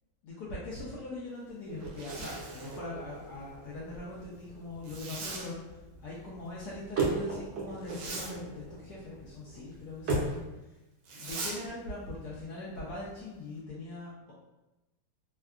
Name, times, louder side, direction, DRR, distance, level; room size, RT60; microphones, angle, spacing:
voice 1, 0.2-10.4 11.1-14.3, left 2 dB, 70° left, -6 dB, 1.0 m, -41 dB
sound 1, 1.7-10.4, right 3 dB, 70° right, 1.3 m, -38 dB
Zipper (clothing), 1.8-2.8 4.8-5.5 7.8-8.3 11.0-11.6, right 3 dB, 85° right, 1.4 m, -40 dB
3.5 x 2.2 x 2.3 m, 1.0 s
omnidirectional pair, 2.1 m